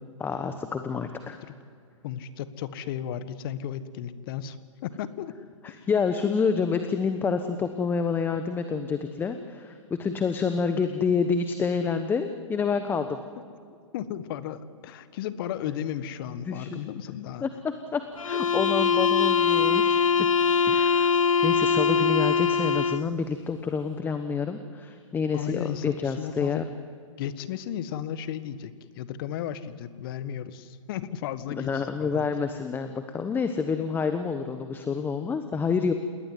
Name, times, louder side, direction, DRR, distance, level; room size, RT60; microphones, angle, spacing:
voice 1, 0.2-1.4 5.6-13.2 16.3-16.8 17.4-20.3 20.7-26.6 31.5-35.9, left 5 dB, 10° left, 8 dB, 1.1 m, -28 dB
voice 2, 2.0-4.6 4.8-5.3 13.9-17.4 25.3-26.7 27.2-31.7 32.0-32.3, left 10 dB, 45° left, 13 dB, 1.5 m, -34 dB
sound 1, 18.2-23.1, left 6 dB, 90° left, 0.7 m, -22 dB
28.5 x 19.5 x 9.3 m, 2.2 s
hypercardioid pair, 130°, 17 cm